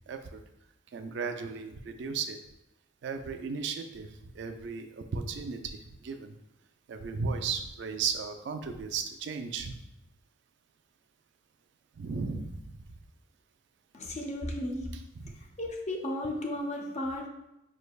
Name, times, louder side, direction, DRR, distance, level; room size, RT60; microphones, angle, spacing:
voice 1, 0.1-0.4 0.9-2.4 3.0-6.3 6.9-9.8 12.0-12.8 15.2-15.3, right 5 dB, 60° right, 6 dB, 0.3 m, -35 dB
voice 2, 13.9-14.9 15.6-17.3, left 1 dB, 35° left, 1 dB, 0.5 m, -34 dB
4.9 x 3.2 x 2.3 m, 0.86 s
head